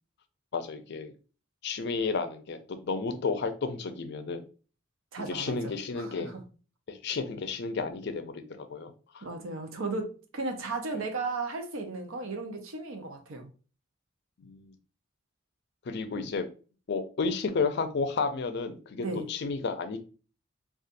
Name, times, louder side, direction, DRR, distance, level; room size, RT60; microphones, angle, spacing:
voice 1, 0.5-1.1 1.6-4.4 5.3-6.3 6.9-9.3 14.4-14.7 15.9-16.5 16.9-20.0, left 4 dB, 55° left, 0.4 m, -32 dB
voice 2, 5.1-5.7 6.0-6.4 9.2-13.5 19.0-19.3, right 3 dB, 75° right, 0.7 m, -35 dB
4.0 x 2.4 x 2.5 m
head